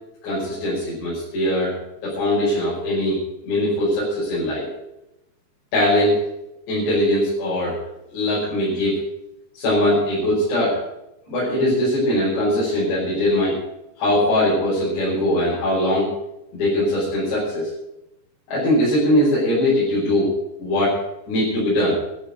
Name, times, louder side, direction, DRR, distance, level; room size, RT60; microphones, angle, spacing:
voice 1, 0.2-1.7 2.0-3.2 3.5-4.7 5.7-6.2 6.7-7.8 8.1-9.0 9.6-10.8 11.3-13.6 14.0-16.1 16.5-17.7 18.5-20.3 20.6-21.0 21.3-21.9, left 1 dB, 85° left, -8 dB, 7.7 m, -21 dB
13.5 x 7.6 x 9.6 m, 0.87 s
omnidirectional pair, 4.9 m